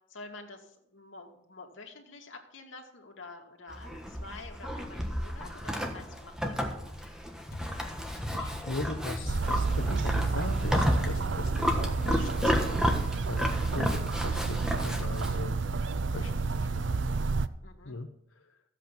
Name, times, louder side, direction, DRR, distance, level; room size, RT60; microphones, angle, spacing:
voice 1, 0.1-6.9 17.6-18.0, left 3 dB, 70° left, 2 dB, 2.4 m, -48 dB
Livestock farm animals working animals, 3.7-15.4, equal, 5° right, 1.4 m, -32 dB
sound 1, 7.5-13.2, left 2 dB, 50° left, 0.9 m, -46 dB
voice 2, 8.3-15.8 16.1-17.1 17.8-18.1, left 2 dB, 90° left, 4 dB, 0.9 m, -39 dB
sound 2, 9.3-17.5, right 4 dB, 65° right, 0.6 m, -30 dB
14.5 x 8.3 x 5.9 m, 0.78 s
head